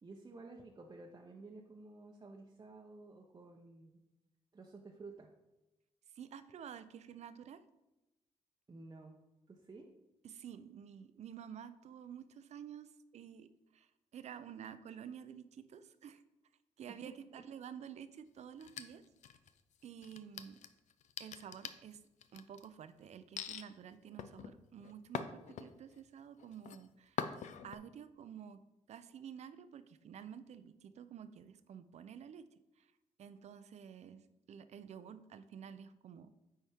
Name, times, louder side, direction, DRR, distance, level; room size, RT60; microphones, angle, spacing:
voice 1, 0.0-4.0 4.5-5.3 8.7-9.2 9.5-9.9 17.0-17.2, right 3 dB, 30° right, 0 dB, 0.8 m, -53 dB
voice 2, 6.2-7.6 10.2-16.2 16.8-19.0 19.8-20.6 21.2-22.0 22.3-27.3 27.6-28.6 28.9-32.5 32.8-32.9 33.2-36.3, right 8 dB, 60° right, 12 dB, 0.5 m, -51 dB
sound 1, 18.6-19.6 20.0-22.7 23.4-23.7 24.2-26.0 26.4-26.8 27.2-27.8, left 8 dB, 65° left, 0.5 m, -43 dB
9.1 x 4.3 x 3.5 m, 0.97 s
cardioid pair, 80°, 13 cm